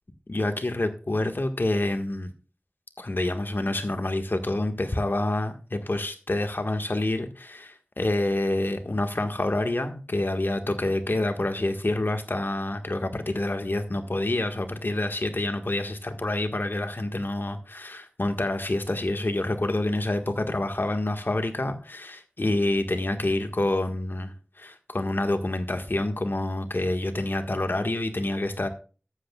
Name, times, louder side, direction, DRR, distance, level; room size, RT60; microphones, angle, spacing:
voice 1, 0.3-2.3 3.0-28.7, left 2 dB, 70° left, 6 dB, 1.6 m, -27 dB
14.0 x 11.5 x 2.4 m, 0.35 s
wide cardioid pair, 45°, 4 cm